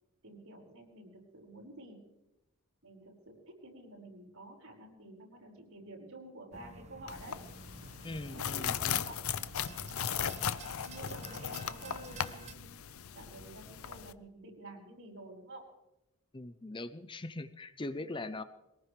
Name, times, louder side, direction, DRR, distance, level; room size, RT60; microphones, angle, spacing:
voice 1, 0.2-2.1 2.8-7.4 8.3-9.2 10.0-10.2 10.8-15.7 18.0-18.1, right 1 dB, 80° right, -1 dB, 5.3 m, -50 dB
sound 1, 6.5-12.5, right 2 dB, 30° right, 0.8 m, -51 dB
sound 2, 7.1-14.1, left 8 dB, 70° left, 0.6 m, -37 dB
voice 2, 8.0-9.0 16.3-18.4, left 2 dB, 20° left, 11 dB, 0.6 m, -41 dB
22.0 x 19.0 x 3.3 m, 0.91 s
head